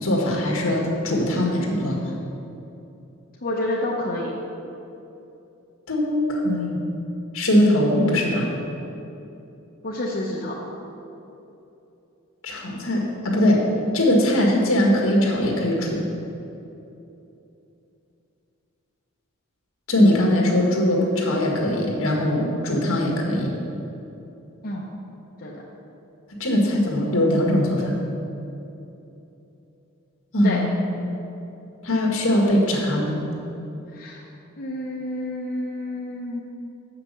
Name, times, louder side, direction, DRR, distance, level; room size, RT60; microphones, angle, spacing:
voice 1, 0.0-2.0 5.9-6.8 7.3-8.5 12.4-13.7 13.9-16.0 19.9-23.5 26.4-28.0 30.3-30.8 31.8-33.2, left 1 dB, 65° left, -2 dB, 1.7 m, -21 dB
voice 2, 3.4-4.3 9.8-10.5 24.6-24.9 25.4-25.5 30.4-30.6 33.9-34.2 34.6-36.4, left 1 dB, 45° left, -4 dB, 0.9 m, -29 dB
7.4 x 5.9 x 6.7 m, 2.9 s
head